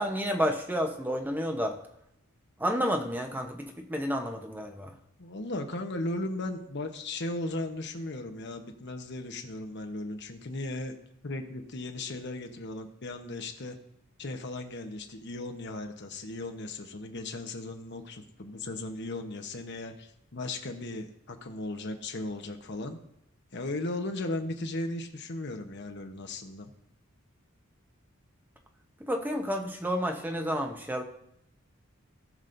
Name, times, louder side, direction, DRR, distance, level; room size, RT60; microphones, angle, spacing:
voice 1, 0.0-1.7 2.6-4.9 29.0-31.0, equal, 10° right, 3 dB, 0.9 m, -30 dB
voice 2, 5.2-10.9 11.2-13.8 14.2-23.0 23.5-26.7, left 2 dB, 55° left, 5 dB, 1.0 m, -36 dB
18.5 x 6.2 x 2.6 m, 0.77 s
head